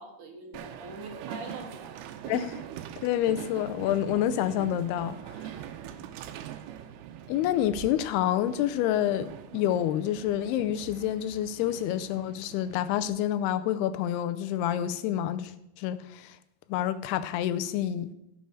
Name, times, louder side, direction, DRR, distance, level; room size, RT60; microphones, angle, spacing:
voice 1, 0.0-2.0 5.8-6.0, right 2 dB, 60° right, 2.7 m, -43 dB
Train, 0.5-13.1, right 10 dB, 90° right, 2.7 m, -43 dB
voice 2, 2.3-2.6 3.0-5.2 7.3-15.5 15.8-16.4 16.7-18.1, left 11 dB, 90° left, 2.6 m, -28 dB
16.0 x 7.0 x 4.7 m
omnidirectional pair, 4.6 m